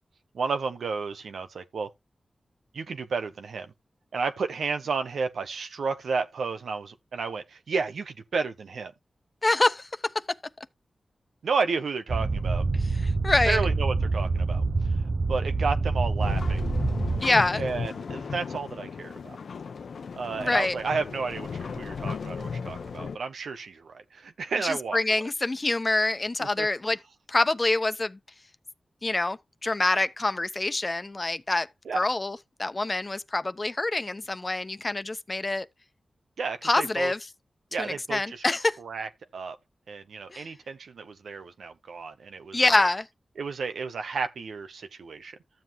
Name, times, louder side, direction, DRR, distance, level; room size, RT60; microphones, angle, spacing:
voice 1, 0.3-1.9 2.7-3.7 4.1-8.9 11.4-12.6 13.4-14.6 15.0-16.7 17.6-19.4 20.1-25.2 26.4-26.7 31.8-32.1 36.4-37.1 37.7-38.4 38.8-39.6 39.9-42.9 43.4-45.4, right 4 dB, 85° right, 1.1 m, -32 dB
voice 2, 9.4-9.9 13.0-13.6 17.2-17.6 20.4-20.8 24.6-27.0 27.3-28.2 29.0-31.7 31.9-35.6 36.6-37.2 37.8-38.8 40.3-40.4 42.5-43.1, left 2 dB, 35° left, 1.0 m, -26 dB
sound 1, 12.1-17.2, right 3 dB, 55° right, 1.0 m, -26 dB
sound 2, 16.2-23.2, left 5 dB, 85° left, 0.8 m, -35 dB
13.0 x 7.4 x 3.1 m
cardioid pair, 50°, 0 cm